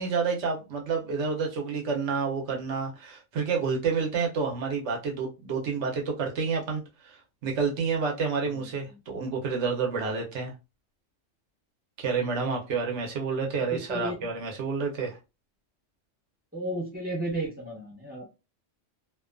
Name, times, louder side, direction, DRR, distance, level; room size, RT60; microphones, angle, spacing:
voice 1, 0.0-7.2 7.4-10.5 12.0-15.2, right 5 dB, 70° right, 1.0 m, -29 dB
voice 2, 13.7-14.3 16.5-18.3, right 1 dB, 10° right, 1.1 m, -33 dB
2.5 x 2.2 x 2.4 m
omnidirectional pair, 1.3 m